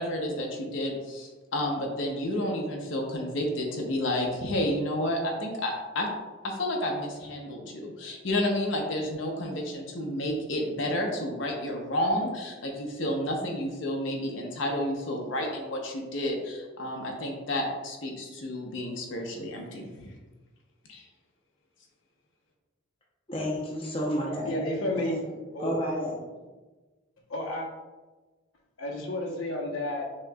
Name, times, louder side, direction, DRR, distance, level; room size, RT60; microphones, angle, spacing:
voice 1, 0.0-6.1 6.4-20.1 20.9-21.1, left 1 dB, 70° left, 0 dB, 0.7 m, -31 dB
voice 2, 23.3-24.5 24.9-25.2 25.6-26.2, equal, 25° left, -3 dB, 0.6 m, -31 dB
voice 3, 24.4-25.2 25.5-25.7 27.3-27.7 28.8-30.2, left 1 dB, 90° left, -2 dB, 0.9 m, -31 dB
6.1 x 2.9 x 2.3 m, 1.2 s
head